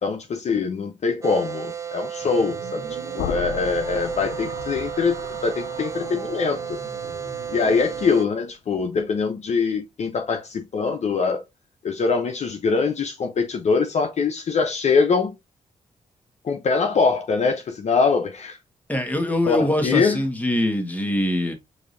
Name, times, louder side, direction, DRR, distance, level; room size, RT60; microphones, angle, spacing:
voice 1, 0.0-2.8 3.1-6.8 7.5-11.4 11.8-15.3 16.4-18.6 19.5-20.2, left 4 dB, 55° left, 0.7 m, -23 dB
sound 1, 1.2-8.3, right 8 dB, 20° right, 0.5 m, -33 dB
sound 2, 2.2-8.1, right 2 dB, 80° right, 1.5 m, -40 dB
sound 3, 3.2-9.1, left 8 dB, 85° left, 0.4 m, -37 dB
voice 2, 18.9-21.5, left 1 dB, 10° left, 1.4 m, -23 dB
4.8 x 2.8 x 2.6 m
supercardioid pair, 60°, 14 cm